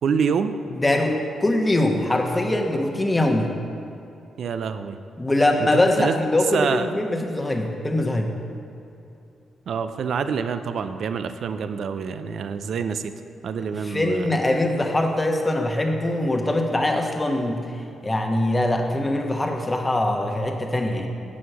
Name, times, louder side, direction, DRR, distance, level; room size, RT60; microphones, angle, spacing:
voice 1, 0.0-0.5 4.4-5.0 6.0-6.2 6.5-6.9 9.7-13.1 13.4-14.3, right 6 dB, 65° right, 10 dB, 0.4 m, -26 dB
voice 2, 0.7-3.5 5.2-8.3 13.8-17.6 18.0-21.1, left 1 dB, 20° left, 3 dB, 1.2 m, -22 dB
7.6 x 6.3 x 5.6 m, 2.8 s
supercardioid pair, 50°, 0 cm